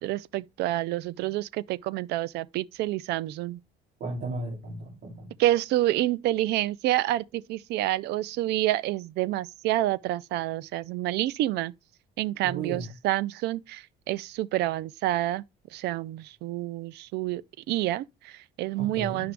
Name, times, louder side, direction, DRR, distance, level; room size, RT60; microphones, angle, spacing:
voice 1, 0.0-3.6 5.4-11.7 12.2-15.4 15.7-19.3, right 15 dB, 80° right, 0.5 m, -28 dB
voice 2, 4.0-5.3 12.4-12.9 18.8-19.3, right 3 dB, 55° right, 2.9 m, -35 dB
9.5 x 6.0 x 3.3 m
cardioid pair, 110°, 17 cm